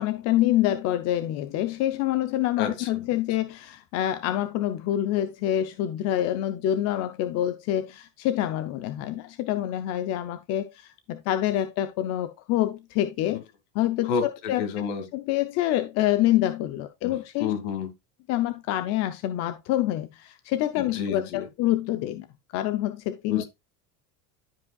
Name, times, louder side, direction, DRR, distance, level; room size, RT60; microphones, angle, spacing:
voice 1, 0.0-13.4 13.7-14.6 15.1-17.5 18.3-22.3 22.5-23.4, left 13 dB, 40° left, 0.6 m, -26 dB
voice 2, 2.6-3.1 14.1-15.0 17.0-17.9 20.8-21.4 23.2-23.4, left 6 dB, 60° left, 2.3 m, -30 dB
12.0 x 5.2 x 2.3 m
supercardioid pair, 155°, 40 cm